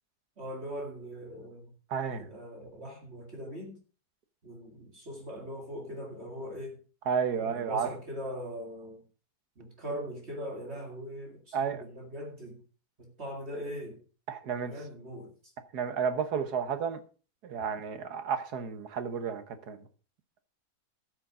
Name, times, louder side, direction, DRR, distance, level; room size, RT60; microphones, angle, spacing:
voice 1, 0.4-1.7 2.1-3.8 4.4-6.8 7.3-9.0 9.6-12.6 13.0-14.0 14.7-15.5, equal, 45° right, 2.4 m, -41 dB
voice 2, 1.9-2.3 7.1-7.9 11.5-11.8 14.3-14.7 15.7-17.0 17.4-19.8, right 7 dB, 85° right, 1.7 m, -31 dB
12.5 x 6.5 x 4.9 m
omnidirectional pair, 1.6 m